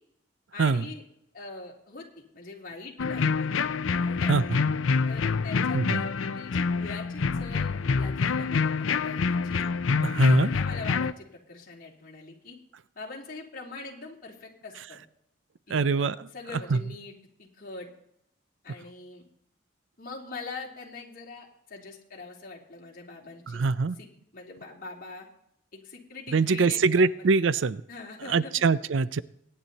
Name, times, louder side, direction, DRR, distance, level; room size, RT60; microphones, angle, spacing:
voice 1, 0.5-1.0 1.3-3.5 3.9-4.4 5.1-9.6 10.3-12.6 12.9-15.0 15.7-17.1 17.4-17.9 18.6-19.2 20.0-23.7 24.0-25.3 25.7-27.3 27.9-28.5, left 3 dB, 45° left, -1 dB, 3.3 m, -43 dB
sound 1, 3.0-11.1, left 5 dB, 85° left, 0.6 m, -26 dB
voice 2, 10.0-10.5 15.7-16.3 16.7-16.8 23.5-24.0 26.3-27.8 28.3-29.2, right 4 dB, 75° right, 18 dB, 0.5 m, -23 dB
23.5 x 10.0 x 4.1 m, 0.75 s
head